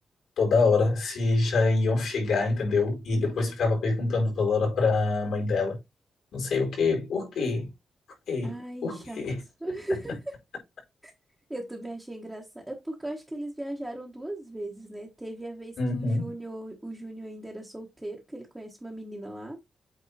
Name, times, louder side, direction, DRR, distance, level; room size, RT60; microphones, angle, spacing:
voice 1, 0.4-5.8 6.3-7.7 8.3-8.5 8.8-9.4 15.8-16.3, left 3 dB, 85° left, 4.6 m, -25 dB
voice 2, 8.4-9.2 9.6-10.3 11.0-11.1 11.5-19.6, right 1 dB, 10° right, 1.2 m, -37 dB
8.4 x 3.5 x 4.2 m
wide cardioid pair, 180°, 0 cm